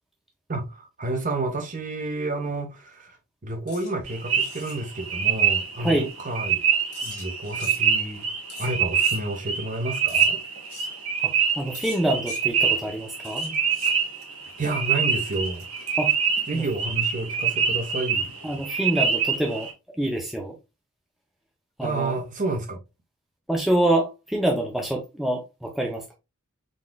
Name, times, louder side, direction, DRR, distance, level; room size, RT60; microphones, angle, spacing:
voice 1, 0.5-3.2 3.4-6.6 7.0-8.3 8.6-10.4 14.6-15.7 16.5-18.3 21.8-22.8, right 2 dB, 35° right, 0.9 m, -30 dB
sound 1, 3.7-3.9 4.3-4.8 6.9-7.9 8.5-9.2 10.1-10.3 10.7-10.9 11.7-12.4 13.2-14.0 15.3-16.4, left 6 dB, 85° left, 1.1 m, -44 dB
sound 2, 4.1-19.7, right 6 dB, 80° right, 1.2 m, -26 dB
voice 2, 5.8-6.1 11.2-13.5 16.0-16.1 16.5-16.6 18.4-19.7 20.0-20.6 21.8-22.2 23.5-26.0, right 1 dB, ahead, 0.5 m, -26 dB
3.9 x 3.7 x 2.2 m
head